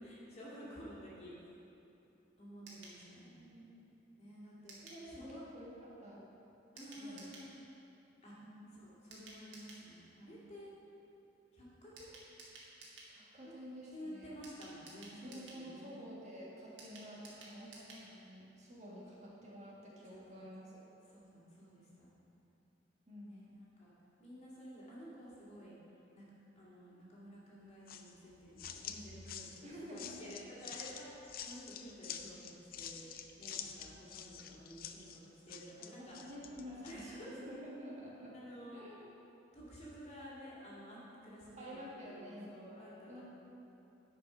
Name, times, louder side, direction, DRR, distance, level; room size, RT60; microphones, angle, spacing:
voice 1, 0.0-1.3 2.4-3.5 4.2-4.8 5.1-5.4 6.7-7.6 8.2-8.4 8.7-10.7 11.5-12.2 13.4-13.5 13.9-16.0 17.6-17.8 20.3-20.4 21.1-22.1 23.3-23.9 24.2-25.7 26.1-26.2 26.6-36.2 36.8-37.3 38.3-38.9 39.5-43.2, equal, 35° left, -7 dB, 2.2 m, -52 dB
sound 1, 2.7-3.0 4.7-5.0 6.8-7.5 9.1-9.9 12.0-13.1 14.4-15.6 16.8-18.1 18.4-18.5 18.7-18.8, right 3 dB, 80° right, 1.8 m, -54 dB
voice 2, 3.2-3.8 4.8-5.7 6.0-6.3 6.9-7.3 8.4-8.7 13.1-14.3 15.2-20.8 23.1-23.4 29.6-30.3 36.0-38.3 38.7-39.1 41.6-42.5 43.1-43.2, equal, 40° right, -6 dB, 1.7 m, -50 dB
sound 2, 27.9-37.0, left 8 dB, 50° left, 0.5 m, -48 dB
10.0 x 5.1 x 5.6 m, 2.9 s
head